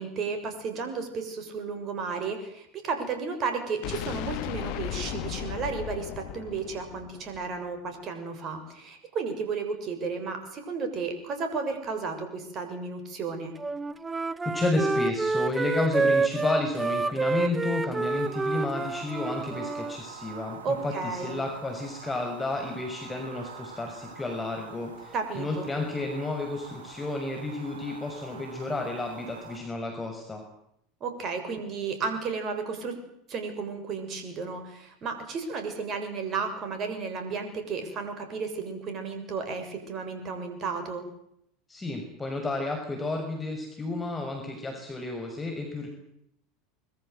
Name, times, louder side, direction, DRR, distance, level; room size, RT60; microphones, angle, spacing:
voice 1, 0.0-13.5 20.6-21.4 25.1-25.7 31.0-33.0 33.3-41.0, right 4 dB, 40° right, 6 dB, 6.8 m, -33 dB
sound 1, 3.8-7.8, left 12 dB, 60° left, 1.9 m, -36 dB
Wind instrument woodwind instrument, 13.6-20.0, right 3 dB, 20° right, 1.2 m, -28 dB
voice 2, 14.4-30.4 41.7-45.9, left 2 dB, 15° left, 3 dB, 6.1 m, -31 dB
sound 2, 18.0-29.6, right 5 dB, 70° right, 7.9 m, -45 dB
24.5 x 22.5 x 8.1 m, 0.74 s
figure-of-eight pair, 75°, 0 cm